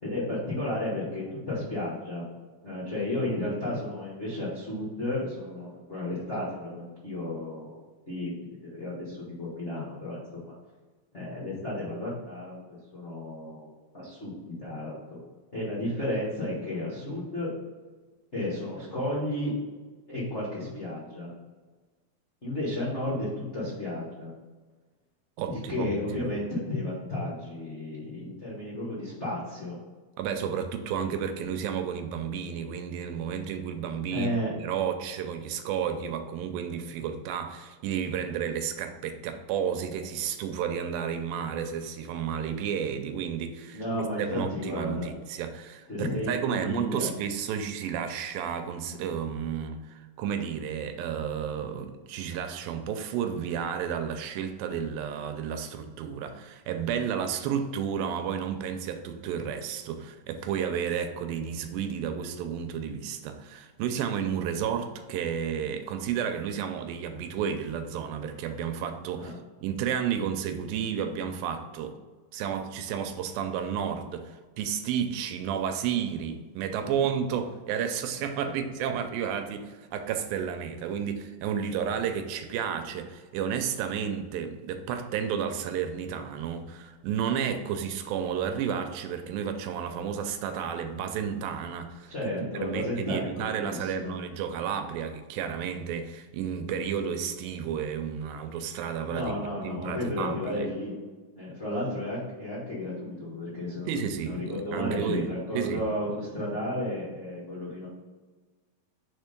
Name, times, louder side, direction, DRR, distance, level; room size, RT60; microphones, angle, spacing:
voice 1, 0.0-2.2 2.6-7.7 8.1-8.3 8.6-10.2 11.1-13.7 13.9-15.2 15.5-17.5 18.3-19.5 20.1-21.3 22.4-24.3 25.4-29.8 34.1-34.5 43.7-45.1 45.9-47.1 69.2-69.4 76.9-77.0 78.4-78.5 92.1-94.1 99.0-100.9 101.3-103.9 104.2-107.9, left 1 dB, 60° left, -7 dB, 0.7 m, -33 dB
voice 2, 25.4-26.3 30.2-69.3 69.6-72.0 72.3-92.3 92.6-100.7 103.9-105.9, right 8 dB, 80° right, 7 dB, 2.3 m, -32 dB
5.0 x 4.5 x 5.1 m, 1.3 s
omnidirectional pair, 4.2 m